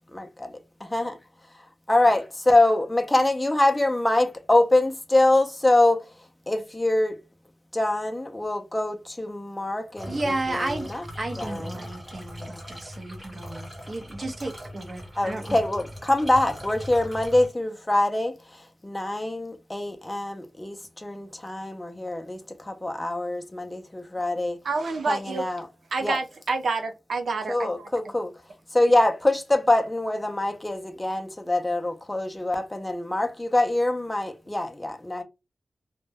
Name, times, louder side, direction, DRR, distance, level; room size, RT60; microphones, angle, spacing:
voice 1, 0.1-1.2 1.5-7.2 7.7-11.0 11.4-11.9 15.2-24.6 25.1-25.7 26.0-26.2 27.5-28.4 28.7-35.2, left 2 dB, 10° left, 0.4 m, -24 dB
sound 1, 9.9-17.5, equal, 15° right, 0.7 m, -40 dB
voice 2, 10.1-10.9 11.2-15.6, right 2 dB, 40° right, 0.6 m, -33 dB
voice 3, 24.6-25.4 25.9-27.7, right 4 dB, 90° right, 0.5 m, -28 dB
2.1 x 2.0 x 3.3 m
wide cardioid pair, 155°, 0 cm